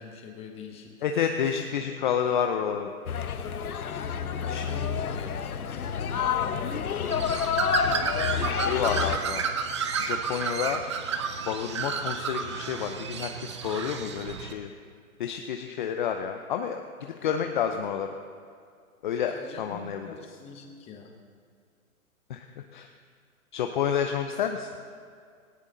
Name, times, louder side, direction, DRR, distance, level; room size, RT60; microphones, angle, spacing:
voice 1, 0.0-1.0 1.8-1.9 4.2-7.1 8.9-9.5 17.2-17.5 19.2-21.1, left 4 dB, 15° left, 3 dB, 1.3 m, -44 dB
voice 2, 1.0-2.9 4.5-4.7 8.7-9.4 10.0-10.8 11.5-14.7 15.2-16.8 17.2-18.1 19.0-20.1 22.3-22.9 23.5-24.7, left 8 dB, 35° left, 5 dB, 0.7 m, -29 dB
sound 1, 3.1-9.2, left 7 dB, 85° left, 1.1 m, -29 dB
Bird, 7.1-14.5, right 5 dB, 20° right, 0.5 m, -31 dB
18.0 x 17.5 x 3.9 m, 2.2 s
hypercardioid pair, 150°, 43 cm